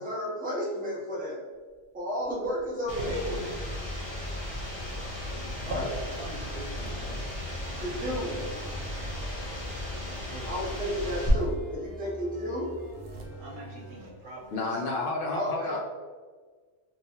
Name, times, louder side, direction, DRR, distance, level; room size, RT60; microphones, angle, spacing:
voice 1, 0.0-1.4 1.9-3.5 5.6-5.9 7.7-8.4 10.4-12.7 15.3-15.8, equal, 10° right, -4 dB, 0.4 m, -32 dB
sound 1, 1.7-7.0 7.9-9.3 10.5-10.6 11.0-12.1 12.3-14.6, right 1 dB, 60° right, 0.6 m, -46 dB
sound 2, 2.9-11.3, left 1 dB, 25° left, 0.9 m, -36 dB
sound 3, 4.8-14.1, right 1 dB, 45° right, 1.0 m, -45 dB
voice 2, 5.7-7.4 8.0-9.1 9.4-9.6 10.0-10.5 13.3-14.8, right 1 dB, 90° right, -2 dB, 1.1 m, -45 dB
voice 3, 14.5-15.8, left 3 dB, 60° left, -2 dB, 0.7 m, -30 dB
3.8 x 2.3 x 2.8 m, 1.5 s
omnidirectional pair, 1.2 m